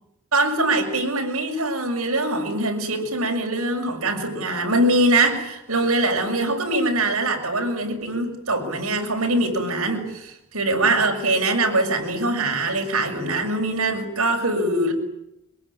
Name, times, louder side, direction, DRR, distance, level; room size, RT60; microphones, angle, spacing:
voice 1, 0.3-14.9, right 2 dB, 90° right, 2 dB, 6.8 m, -23 dB
24.5 x 22.0 x 10.0 m, 0.83 s
head